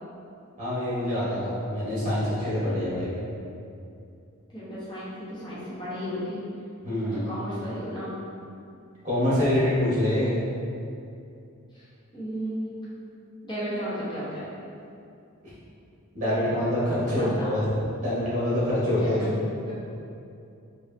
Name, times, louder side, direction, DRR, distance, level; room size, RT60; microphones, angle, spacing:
voice 1, 0.6-3.1 6.8-7.3 9.0-10.3 16.1-19.2, left 1 dB, 35° right, -9 dB, 1.3 m, -25 dB
voice 2, 4.5-6.4 7.1-8.1 11.7-11.9 12.1-12.7 13.4-14.5 17.2-17.6 19.0-19.3 19.7-19.8, equal, 20° left, -11 dB, 1.1 m, -34 dB
4.7 x 2.5 x 2.7 m, 2.6 s
head